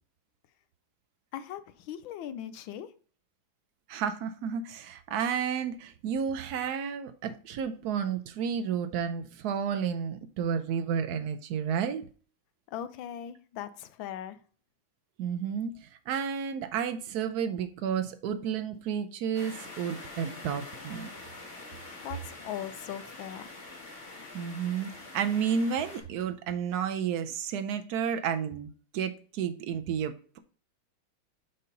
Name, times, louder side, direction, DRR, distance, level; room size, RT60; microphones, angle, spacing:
voice 1, 1.3-2.9 12.7-14.4 22.0-23.5, left 10 dB, 75° left, 1.3 m, -39 dB
voice 2, 3.9-12.1 15.2-21.1 24.3-30.4, right 7 dB, 80° right, 0.8 m, -31 dB
sound 1, 19.3-26.0, left 2 dB, 35° left, 1.7 m, -45 dB
5.6 x 5.4 x 3.9 m
omnidirectional pair, 2.3 m